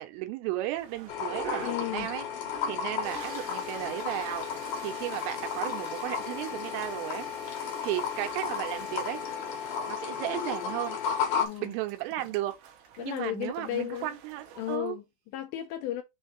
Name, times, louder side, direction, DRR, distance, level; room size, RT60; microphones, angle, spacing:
voice 1, 0.0-2.3 2.7-4.5 4.8-7.3 7.8-9.2 9.9-11.0 11.6-12.6 13.0-15.0, right 16 dB, 90° right, 3.3 m, -34 dB
sound 1, 0.7-14.8, right 7 dB, 70° right, 2.9 m, -48 dB
sound 2, 1.1-11.5, left 7 dB, 65° left, 2.0 m, -34 dB
voice 2, 1.4-2.1 4.8-4.9 11.4-11.7 13.0-14.1 14.6-16.0, left 13 dB, 85° left, 2.7 m, -34 dB
Toilet flush, 1.7-1.8 2.4-14.9, right 4 dB, 55° right, 2.6 m, -48 dB
7.1 x 2.7 x 5.0 m
omnidirectional pair, 5.6 m